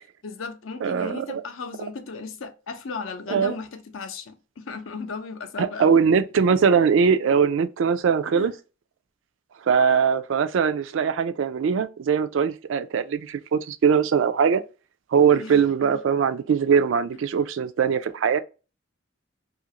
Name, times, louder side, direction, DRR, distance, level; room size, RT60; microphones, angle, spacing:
voice 1, 0.2-6.0 8.3-8.5 15.3-16.0, left 4 dB, 80° left, 0.5 m, -36 dB
voice 2, 0.8-1.4 3.3-3.5 5.6-8.5 9.6-14.6 15.1-18.4, right 6 dB, 70° right, 0.3 m, -21 dB
2.8 x 2.4 x 2.9 m
head